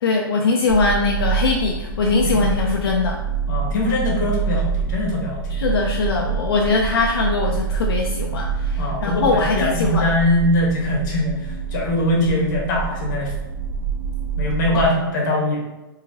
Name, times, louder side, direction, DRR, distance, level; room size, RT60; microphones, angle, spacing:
voice 1, 0.0-3.2 5.5-10.1 14.7-14.8, left 3 dB, 75° left, 0 dB, 0.4 m, -21 dB
sound 1, 0.7-14.9, right 6 dB, 75° right, 0.4 m, -26 dB
voice 2, 3.5-5.6 8.8-13.3 14.4-15.6, left 1 dB, 50° left, -1 dB, 1.0 m, -22 dB
2.9 x 2.7 x 2.6 m, 1.0 s
hypercardioid pair, 150°, 12 cm